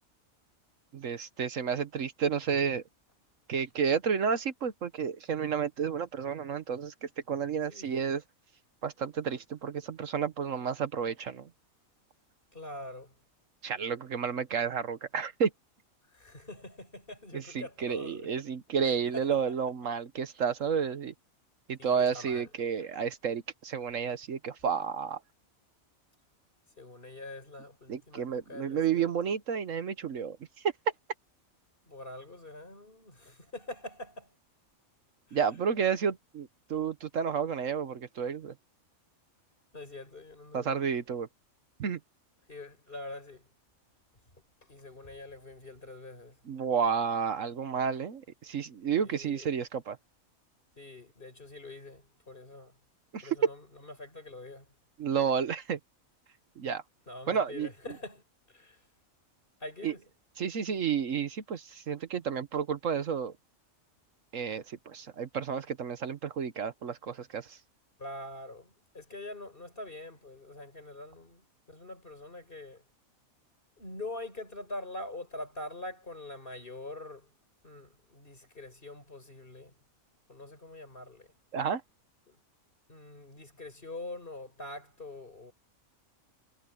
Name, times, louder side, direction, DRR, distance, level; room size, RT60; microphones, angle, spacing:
voice 1, 0.9-2.8 3.5-8.2 8.8-11.5 13.6-15.5 17.3-21.1 21.7-25.2 27.9-30.4 30.6-30.7 35.3-38.5 40.5-41.3 41.8-42.0 46.5-50.0 53.1-53.3 55.0-55.8 56.6-56.8 57.3-57.7 59.8-59.9 60.4-63.3 64.3-67.6 81.5-81.8, right 7 dB, 65° right, 1.4 m, -31 dB
voice 2, 7.7-8.2 12.5-13.1 16.1-18.3 18.8-19.4 21.8-22.5 26.8-29.1 31.9-34.3 35.3-35.4 39.7-41.0 42.5-43.5 44.6-46.4 49.0-49.5 50.8-52.8 53.2-54.7 57.1-58.8 59.6-60.0 68.0-72.8 73.8-77.3 77.6-79.7 80.3-81.3 82.3-82.4 82.9-85.5, left 2 dB, 40° left, 5.0 m, -44 dB
omnidirectional pair, 1.4 m